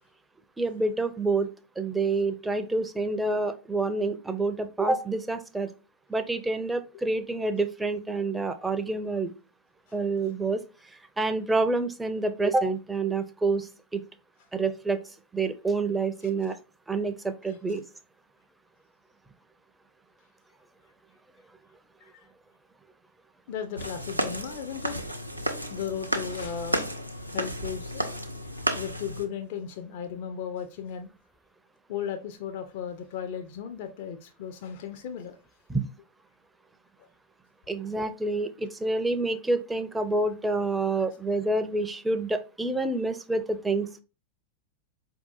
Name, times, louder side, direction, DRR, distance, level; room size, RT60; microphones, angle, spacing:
voice 1, 0.6-1.5 1.8-5.7 6.1-9.3 9.9-10.6 11.2-14.0 14.5-15.0 15.3-16.6 16.9-17.8 35.7-35.8 37.7-44.0, right 3 dB, 10° right, 0.4 m, -28 dB
voice 2, 17.5-17.8 22.0-22.3 23.5-25.0 25.7-26.9 27.3-28.2 28.7-31.1 31.9-35.4 37.0-37.1, left 8 dB, 50° left, 0.4 m, -36 dB
sound 1, 23.8-29.3, equal, 90° right, 0.4 m, -32 dB
4.5 x 2.7 x 2.5 m
figure-of-eight pair, 90°, 0 cm